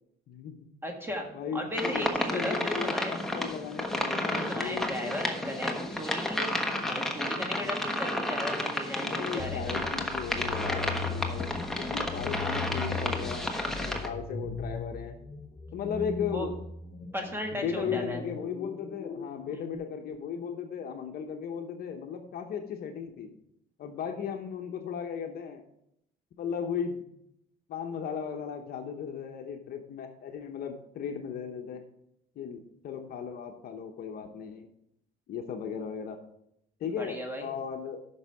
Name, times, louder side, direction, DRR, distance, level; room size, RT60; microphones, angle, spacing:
voice 1, 0.3-0.7 1.3-2.1 2.3-6.2 6.7-7.0 9.0-11.5 11.8-15.2 15.7-16.5 17.5-23.3 23.8-25.6 26.4-27.0 27.7-31.8 32.4-34.7 35.3-36.2 36.8-38.0, left 7 dB, 60° left, 4 dB, 1.0 m, -36 dB
voice 2, 0.8-3.4 4.3-6.5 6.8-9.8 16.3-16.5 17.1-18.2 37.0-37.5, equal, 15° right, 2 dB, 1.7 m, -36 dB
sound 1, 1.7-14.1, left 1 dB, ahead, 1.2 m, -32 dB
sound 2, 9.4-19.8, left 5 dB, 40° left, 1.2 m, -39 dB
9.9 x 6.2 x 4.9 m, 0.77 s
cardioid pair, 120°, 18 cm